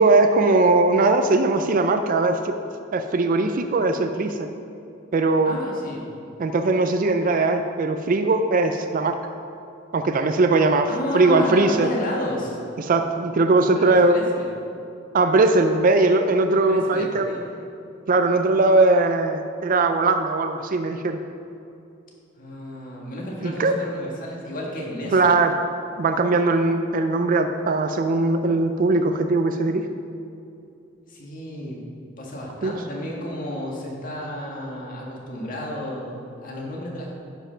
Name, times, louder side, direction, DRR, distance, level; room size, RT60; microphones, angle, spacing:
voice 1, 0.0-2.6 2.9-4.5 5.1-5.6 6.4-9.2 9.9-11.9 12.8-14.2 15.1-17.3 18.1-21.2 23.4-23.8 25.1-25.6 26.0-29.9 32.6-32.8, right 3 dB, 40° right, 7 dB, 0.4 m, -20 dB
voice 2, 5.4-6.0 10.9-12.6 13.9-14.5 16.7-17.4 22.4-25.2 31.1-31.8 32.2-37.1, left 1 dB, 40° left, -2 dB, 1.7 m, -31 dB
9.8 x 5.4 x 5.7 m, 2.7 s
head